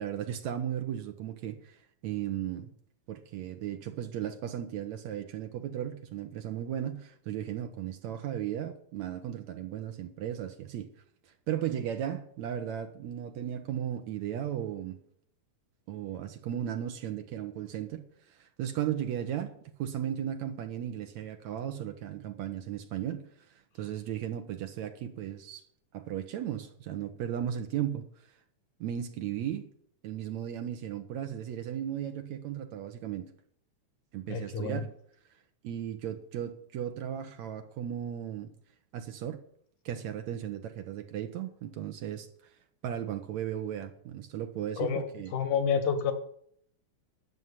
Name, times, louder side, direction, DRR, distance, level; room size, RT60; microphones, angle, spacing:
voice 1, 0.0-2.7 3.1-10.9 11.3-15.0 15.9-19.5 19.8-23.3 23.8-25.6 25.9-28.1 28.8-29.7 30.0-33.3 34.1-34.9 35.6-38.5 38.9-39.4 39.9-42.3 42.8-45.3, right 10 dB, 70° right, 2.1 m, -36 dB
voice 2, 34.3-34.9 44.8-46.1, left 6 dB, 70° left, 2.9 m, -29 dB
11.0 x 7.2 x 9.6 m
omnidirectional pair, 3.6 m